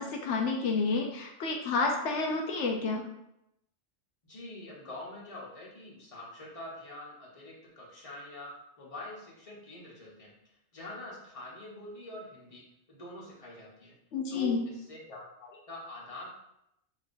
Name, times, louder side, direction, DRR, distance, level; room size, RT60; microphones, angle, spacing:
voice 1, 0.0-3.1 14.1-14.7, left 4 dB, 80° left, 1 dB, 0.9 m, -30 dB
voice 2, 4.2-8.5 8.8-12.6 12.9-13.9 14.3-16.3, left 2 dB, 30° left, -4 dB, 1.1 m, -45 dB
6.3 x 2.9 x 2.6 m, 0.82 s
omnidirectional pair, 1.2 m